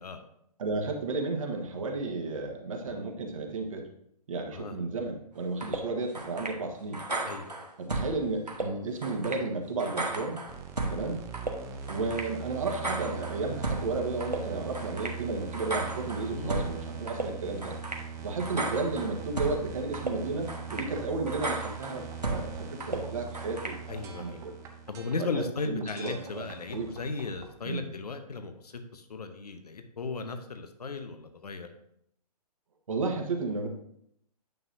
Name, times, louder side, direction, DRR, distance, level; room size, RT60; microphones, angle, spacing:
voice 1, 0.6-3.9 4.3-7.0 7.8-10.4 10.9-11.2 11.9-17.7 18.2-24.5 25.2-25.3 25.6-26.9 27.6-27.9 32.9-33.7, right 3 dB, 55° right, 2 dB, 1.4 m, -33 dB
sound 1, 5.6-5.8 6.1-6.6 6.9-8.1 8.5-8.7 9.0-9.4 9.8-11.0 11.3-11.5 11.9-12.3 12.7-13.9 14.2-14.4 14.7-15.2 15.5-16.7 17.1-17.3 17.6-18.0 18.4-19.6 19.9-20.1 20.5-20.9 21.3-22.5 22.8-23.0 23.3-23.8, right 2 dB, 90° right, 1.2 m, -34 dB
voice 2, 7.2-7.7 16.3-16.6 20.8-21.0 23.9-24.4 24.9-31.7, left 4 dB, 70° left, 8 dB, 0.9 m, -36 dB
sound 2, 10.5-27.6, right 6 dB, 15° right, 0.6 m, -41 dB
9.1 x 5.6 x 2.7 m, 0.73 s
figure-of-eight pair, 130°, 21 cm